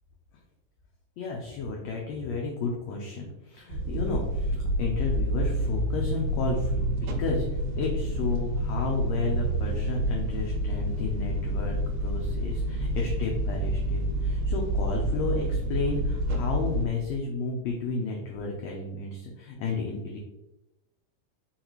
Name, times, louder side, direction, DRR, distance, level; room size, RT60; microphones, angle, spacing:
voice 1, 1.2-7.5 7.8-20.2, left 3 dB, 80° left, -1 dB, 1.5 m, -32 dB
sound 1, 3.7-16.9, right 1 dB, 75° right, 1.9 m, -28 dB
4.3 x 4.0 x 3.0 m, 0.96 s
omnidirectional pair, 3.6 m